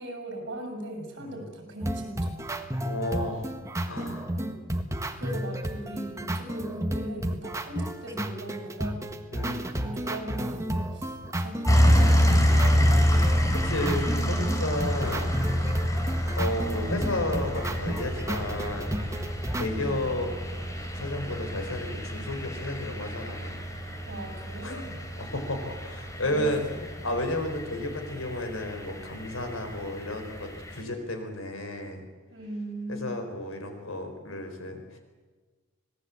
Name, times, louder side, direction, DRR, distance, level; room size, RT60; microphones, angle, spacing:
voice 1, 0.0-2.4 4.3-4.6 5.2-9.0 9.7-13.0 13.4-13.6 19.7-19.9 24.1-25.0 26.2-26.8 32.3-33.2, right 1 dB, 60° right, 3 dB, 7.0 m, -39 dB
sound 1, 1.8-19.7, right 1 dB, 15° right, 1.5 m, -32 dB
voice 2, 2.8-3.5 3.9-4.3 9.3-9.7 13.6-15.3 16.4-19.0 19.5-20.3 20.9-23.6 24.6-24.8 25.2-26.6 27.0-32.1 32.9-34.8, left 1 dB, 70° left, 6 dB, 4.4 m, -32 dB
sound 2, 11.7-30.8, equal, 15° left, 3.2 m, -27 dB
26.0 x 19.0 x 8.4 m, 1.3 s
head